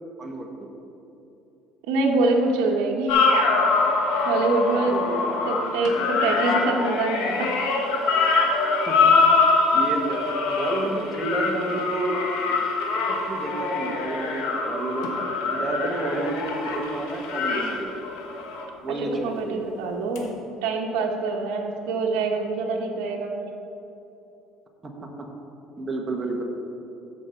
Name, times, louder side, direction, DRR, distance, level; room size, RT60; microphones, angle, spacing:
voice 1, 1.9-3.2 4.2-5.1 5.4-7.5 19.0-20.4 20.6-23.5, right 3 dB, 80° right, 0 dB, 1.0 m, -25 dB
sound 1, 3.1-18.6 20.2-20.3, left 3 dB, 80° left, 1.3 m, -24 dB
voice 2, 4.6-5.3 8.9-9.2 9.7-12.6 13.1-17.9 18.8-19.6 24.8-24.9 25.8-26.4, right 2 dB, 20° right, 1 dB, 1.3 m, -30 dB
13.5 x 5.5 x 4.5 m, 3.0 s
cardioid pair, 120°, 0 cm